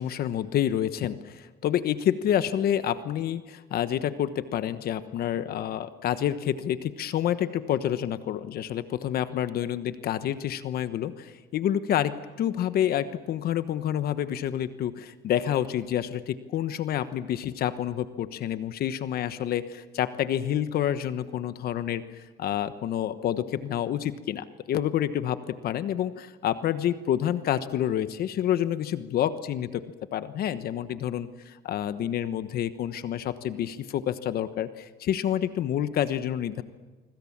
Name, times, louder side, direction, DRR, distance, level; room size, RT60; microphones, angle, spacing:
voice 1, 0.0-29.8 30.1-36.6, left 10 dB, 65° left, 12 dB, 1.2 m, -28 dB
25.0 x 25.0 x 7.4 m, 1.3 s
cardioid pair, 110°, 17 cm